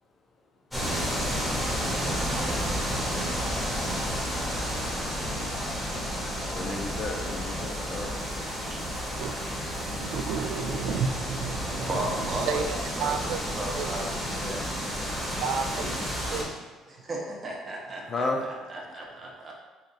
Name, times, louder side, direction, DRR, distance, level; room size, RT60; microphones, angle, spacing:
sound 1, 0.7-16.4, equal, 5° left, 0.8 m, -31 dB
voice 1, 2.3-2.8 6.5-8.2 15.8-15.9 18.1-18.5, left 2 dB, 35° left, 2 dB, 0.5 m, -33 dB
voice 2, 9.9-13.9 15.4-16.5, right 6 dB, 75° right, 7 dB, 0.3 m, -32 dB
voice 3, 11.7-12.6 13.0-13.2 13.6-14.6 16.9-19.6, right 1 dB, 30° right, -1 dB, 0.7 m, -35 dB
2.8 x 2.5 x 3.8 m, 1.2 s
cardioid pair, 135°, 0 cm